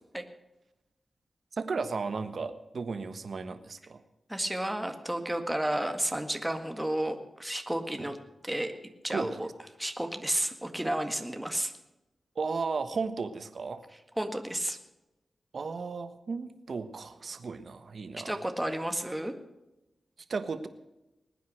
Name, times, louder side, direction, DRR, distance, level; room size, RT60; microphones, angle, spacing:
voice 1, 1.5-4.0 8.0-8.1 9.1-9.5 12.3-13.8 15.5-18.4 20.3-20.7, right 4 dB, 65° right, 10 dB, 1.3 m, -35 dB
voice 2, 4.3-8.2 8.4-8.7 9.0-9.5 9.8-11.7 14.2-14.8 18.3-19.3, right 1 dB, 10° right, 6 dB, 1.8 m, -32 dB
20.0 x 9.4 x 6.5 m, 0.96 s
cardioid pair, 70°, 0 cm